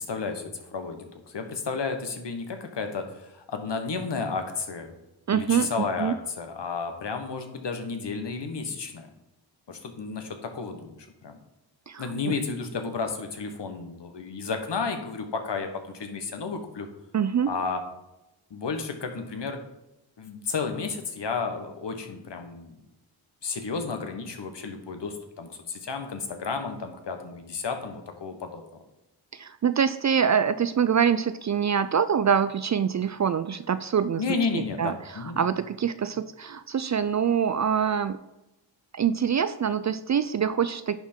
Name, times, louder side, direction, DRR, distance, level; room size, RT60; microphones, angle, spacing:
voice 1, 0.1-4.9 5.3-9.1 9.7-11.4 12.0-16.9 17.5-17.8 18.5-19.6 20.2-22.7 23.4-28.8 34.2-35.4, left 4 dB, 60° left, 6 dB, 1.4 m, -32 dB
voice 2, 5.3-6.1 11.9-12.3 17.1-17.5 29.3-34.2 34.5-38.2 38.9-41.0, right 7 dB, 40° right, 13 dB, 0.4 m, -25 dB
10.5 x 3.6 x 4.4 m, 0.93 s
cardioid pair, 50°, 48 cm